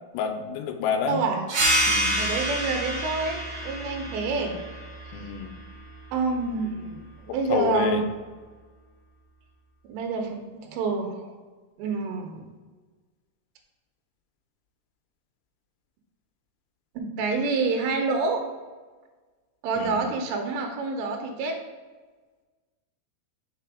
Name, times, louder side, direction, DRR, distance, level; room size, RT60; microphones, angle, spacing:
voice 1, 0.1-1.2 1.9-2.2 5.1-5.5 7.5-8.0 19.8-20.0, left 7 dB, 85° left, 6 dB, 2.6 m, -28 dB
voice 2, 1.1-1.4 2.2-4.6 6.1-8.0 9.9-11.3 11.8-12.5 17.0-18.4 19.6-21.6, right 4 dB, 85° right, 3 dB, 3.0 m, -28 dB
sound 1, 1.5-6.7, right 1 dB, 65° right, 1.9 m, -28 dB
6.0 x 4.1 x 4.7 m, 1.3 s
omnidirectional pair, 5.0 m